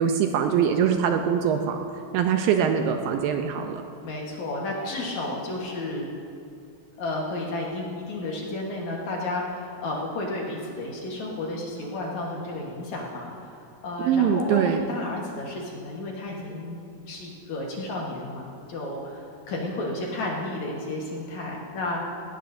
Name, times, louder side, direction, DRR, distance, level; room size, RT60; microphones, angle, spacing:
voice 1, 0.0-1.8 2.1-3.8 14.0-14.8, right 8 dB, 80° right, 5 dB, 2.2 m, -23 dB
voice 2, 4.0-6.1 7.0-13.6 13.8-16.8 17.1-22.0, left 2 dB, 60° left, -2 dB, 2.3 m, -32 dB
18.0 x 17.0 x 2.7 m, 2.5 s
omnidirectional pair, 4.5 m